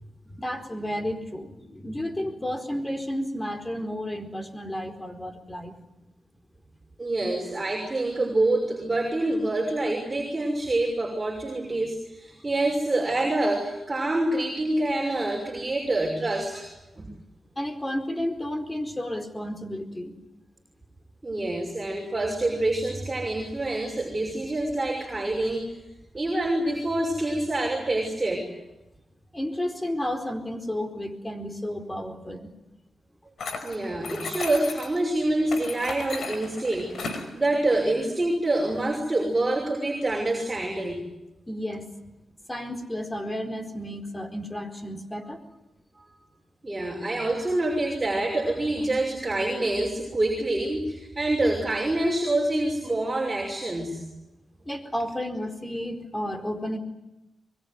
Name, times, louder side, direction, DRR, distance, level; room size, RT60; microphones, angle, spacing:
voice 1, 0.2-5.8 17.6-20.2 29.3-32.5 41.5-41.8 42.5-45.4 54.7-56.8, left 1 dB, 15° left, 7 dB, 4.4 m, -32 dB
voice 2, 7.0-17.1 21.2-25.7 26.1-28.4 33.6-41.0 46.0-46.1 46.6-54.0, right 2 dB, 25° right, -1 dB, 6.2 m, -26 dB
sound 1, 33.4-35.0 35.5-37.3, left 4 dB, 70° left, 5.0 m, -35 dB
24.0 x 22.5 x 9.6 m, 0.98 s
cardioid pair, 75°, 0 cm